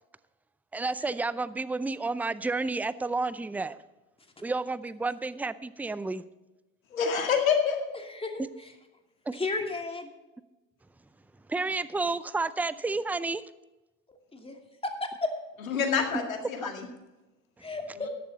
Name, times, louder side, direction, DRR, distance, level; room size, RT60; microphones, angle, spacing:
voice 1, 0.7-3.8 4.4-6.2 8.4-8.5 9.3-9.4 11.5-13.4 16.1-16.3, right 3 dB, 5° right, 16 dB, 0.5 m, -31 dB
voice 2, 6.9-7.8 15.7-16.9, left 6 dB, 85° left, 4 dB, 2.1 m, -26 dB
voice 3, 9.3-10.1 14.3-14.5 14.8-15.3 17.6-18.1, left 3 dB, 15° left, 4 dB, 2.6 m, -32 dB
14.0 x 11.0 x 4.1 m, 1.1 s
hypercardioid pair, 65°, 40 cm